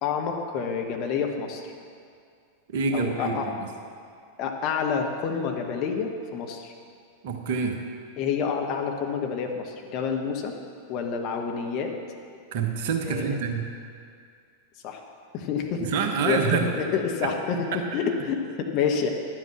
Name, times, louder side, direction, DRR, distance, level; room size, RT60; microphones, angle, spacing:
voice 1, 0.0-1.6 2.9-3.5 4.4-6.7 8.2-10.5 10.9-11.9 13.0-13.4 14.8-15.0 15.3-15.9 16.2-19.1, left 6 dB, 40° left, 3 dB, 1.2 m, -28 dB
voice 2, 2.7-3.5 7.2-7.8 12.5-13.7 15.8-16.7 17.2-17.3 17.7-17.8, right 5 dB, 50° right, 4 dB, 1.1 m, -26 dB
11.5 x 7.8 x 6.0 m, 2.3 s
figure-of-eight pair, 90°, 0 cm